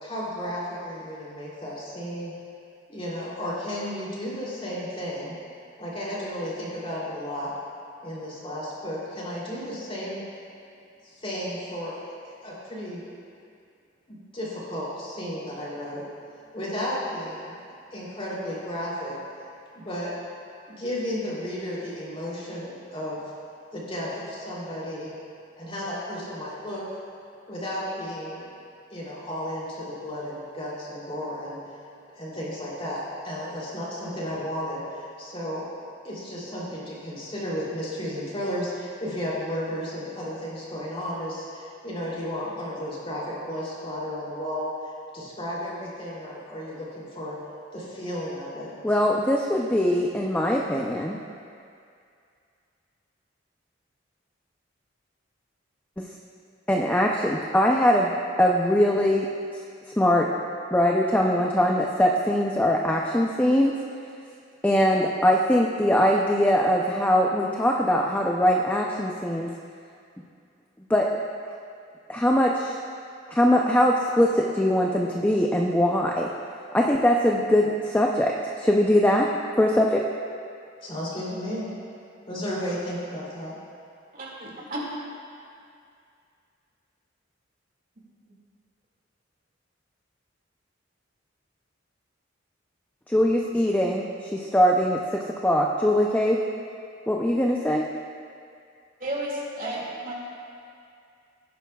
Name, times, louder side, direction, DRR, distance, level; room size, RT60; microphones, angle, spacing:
voice 1, 0.0-2.3 2.9-5.4 5.8-7.5 8.0-10.2 11.0-12.0 12.2-13.0 14.1-16.0 16.5-17.6 17.9-19.2 19.7-20.1 20.8-23.2 23.7-25.1 25.6-26.8 27.5-28.4 28.9-31.8 32.1-35.7 36.0-44.7 45.1-47.4 47.7-48.7 80.8-81.7 82.3-83.5, equal, 30° left, -6 dB, 3.1 m, -33 dB
voice 2, 48.8-51.2 56.0-56.1 56.7-58.1 58.4-59.3 60.0-60.3 60.7-63.8 64.6-69.5 70.9-71.1 72.1-72.8 73.3-76.3 76.7-79.3 79.6-80.0 93.1-96.4 97.1-97.9, equal, 10° left, -1 dB, 0.5 m, -22 dB
voice 3, 84.1-84.9 99.0-100.1, right 1 dB, 45° right, -4 dB, 2.2 m, -32 dB
18.5 x 10.5 x 2.4 m, 2.4 s
head